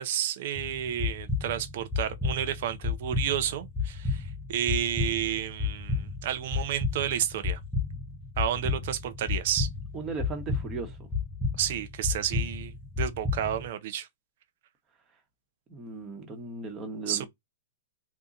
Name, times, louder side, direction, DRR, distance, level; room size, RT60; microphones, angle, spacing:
voice 1, 0.0-7.6 8.4-9.7 11.6-14.1 17.1-17.3, right 10 dB, 55° right, 0.7 m, -31 dB
sound 1, 0.6-13.7, left 4 dB, 10° left, 0.7 m, -32 dB
voice 2, 9.9-11.1 15.7-17.3, right 3 dB, 25° right, 1.1 m, -37 dB
2.9 x 2.3 x 3.9 m
hypercardioid pair, 130°, 0 cm